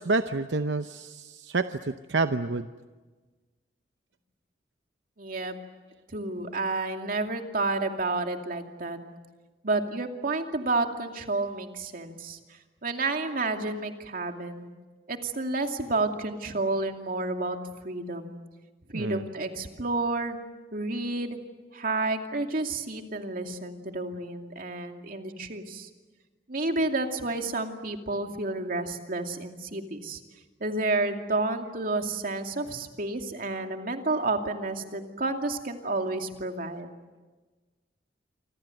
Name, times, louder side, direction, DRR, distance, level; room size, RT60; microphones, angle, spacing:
voice 1, 0.0-2.7 18.9-19.2, right 3 dB, 85° right, 9 dB, 0.8 m, -28 dB
voice 2, 5.2-5.5 6.1-9.0 9.6-12.4 12.8-14.7 15.1-17.6 17.8-18.4 18.9-20.4 20.7-21.4 21.7-25.9 26.5-30.2 30.6-36.9, right 2 dB, 55° right, 4 dB, 2.5 m, -30 dB
28.0 x 25.5 x 7.8 m, 1.3 s
head